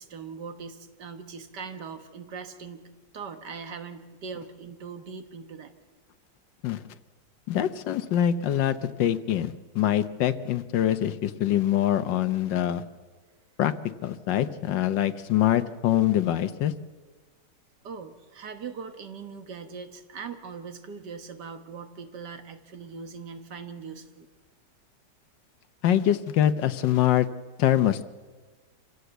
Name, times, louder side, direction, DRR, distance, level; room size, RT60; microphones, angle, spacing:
voice 1, 0.0-2.9 3.1-5.7 17.8-24.3, right 5 dB, 65° right, 8 dB, 2.0 m, -40 dB
voice 2, 7.5-12.8 13.6-13.7 14.0-16.7 25.8-27.3 27.6-28.1, left 11 dB, 80° left, 12 dB, 1.5 m, -24 dB
26.5 x 16.0 x 8.1 m, 1.4 s
omnidirectional pair, 2.0 m